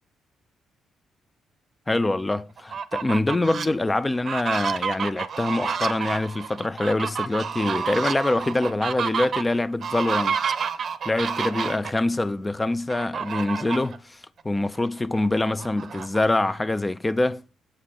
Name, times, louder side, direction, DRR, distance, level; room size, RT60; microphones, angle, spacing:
voice 1, 1.9-10.4 11.1-14.2 14.4-17.4, left 2 dB, 15° left, 0.5 m, -25 dB
Fowl, 2.6-3.7 4.1-11.9 12.9-14.0 14.4-14.5 14.9-16.6, right 6 dB, 50° right, 0.7 m, -30 dB
7.8 x 5.7 x 6.4 m
cardioid pair, 90°, 0 cm